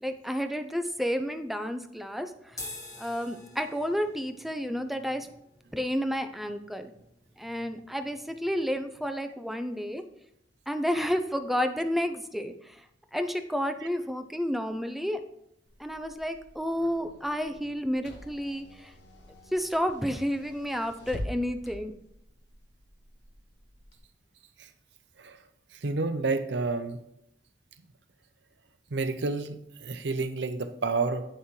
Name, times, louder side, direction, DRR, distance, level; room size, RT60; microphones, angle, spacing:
voice 1, 0.0-2.6 3.0-5.3 5.7-6.9 7.4-10.0 10.7-12.8 13.1-15.2 15.8-18.9 19.5-21.9, equal, ahead, 7 dB, 0.4 m, -31 dB
sound 1, 2.5-9.1, left 2 dB, 20° left, 1.4 m, -48 dB
Car / Engine, 15.7-24.0, left 1 dB, 80° left, 1.3 m, -45 dB
voice 2, 25.8-27.0 28.9-31.2, right 3 dB, 70° right, 9 dB, 0.6 m, -29 dB
8.9 x 5.8 x 3.2 m, 0.78 s
head